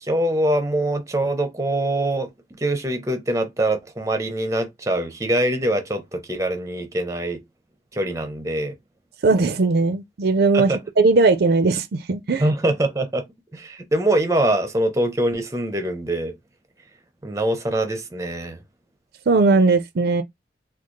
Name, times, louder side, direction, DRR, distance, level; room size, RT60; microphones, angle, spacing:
voice 1, 0.0-7.4 7.9-8.8 10.5-10.8 12.4-13.2 13.5-16.4 17.2-18.6, right 1 dB, 20° right, 0.6 m, -23 dB
voice 2, 9.2-12.5 19.3-20.2, right 3 dB, 60° right, 0.4 m, -18 dB
3.6 x 2.3 x 3.1 m
head